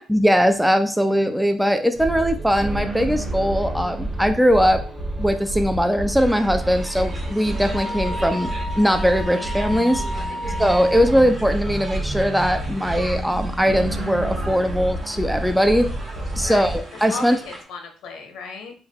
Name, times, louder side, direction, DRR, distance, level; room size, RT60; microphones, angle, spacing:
voice 1, 0.1-4.8 5.2-8.5 8.8-10.0 10.6-15.9 16.4-17.4, equal, ahead, 7 dB, 0.4 m, -20 dB
sound 1, 1.9-16.8, right 1 dB, 20° right, 1.0 m, -29 dB
sound 2, 6.2-17.6, right 1 dB, 40° right, 1.4 m, -39 dB
Wind instrument woodwind instrument, 6.8-11.1, equal, 50° left, 0.5 m, -33 dB
voice 2, 10.3-10.6 16.3-16.8 17.1-18.7, left 4 dB, 90° left, 4 dB, 0.9 m, -36 dB
3.6 x 2.2 x 4.4 m, 0.40 s
cardioid pair, 90°, 0 cm